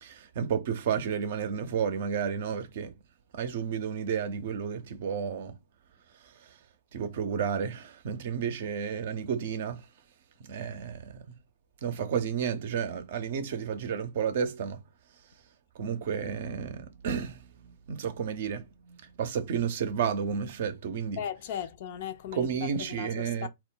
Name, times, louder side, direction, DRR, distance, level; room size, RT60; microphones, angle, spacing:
voice 1, 0.0-2.9 3.3-5.6 6.9-9.8 10.4-11.2 11.8-14.8 15.8-17.4 17.9-21.2 22.3-23.5, right 7 dB, 60° right, 0.5 m, -31 dB
voice 2, 21.2-23.5, left 9 dB, 55° left, 0.4 m, -37 dB
2.1 x 2.1 x 3.7 m
hypercardioid pair, 115°, 0 cm